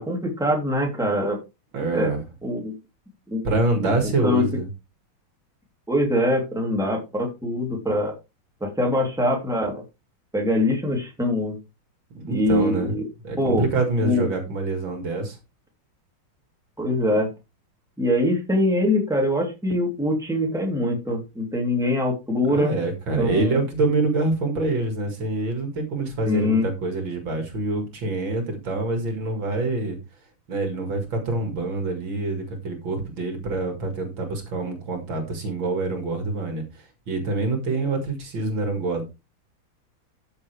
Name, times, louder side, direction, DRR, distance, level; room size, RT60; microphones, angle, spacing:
voice 1, 0.0-1.4 1.9-2.1 2.4-2.7 3.3-3.4 4.2-4.4 5.9-8.1 8.6-9.8 10.3-11.6 12.3-13.0 13.4-13.6 14.0-14.3 16.8-17.3 18.0-22.8 23.2-23.6 26.2-26.7, left 1 dB, ahead, 0 dB, 3.0 m, -23 dB
voice 2, 1.7-2.2 3.4-4.7 12.2-12.9 13.2-15.4 22.5-30.0 30.5-39.0, right 2 dB, 65° right, 5 dB, 2.8 m, -26 dB
13.0 x 6.9 x 3.3 m, 0.26 s
omnidirectional pair, 2.3 m